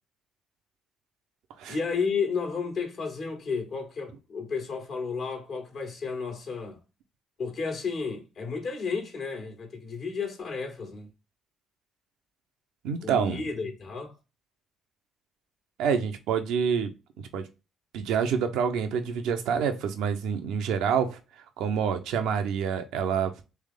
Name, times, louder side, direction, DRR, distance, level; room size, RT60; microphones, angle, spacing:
voice 1, 1.7-6.8 7.4-11.1 13.0-14.1, left 5 dB, 55° left, 1.4 m, -32 dB
voice 2, 12.8-13.5 15.8-16.9 17.3-17.4 17.9-21.2 21.6-23.3, right 7 dB, 70° right, 0.6 m, -27 dB
3.3 x 3.2 x 3.5 m
hypercardioid pair, 45°, 0 cm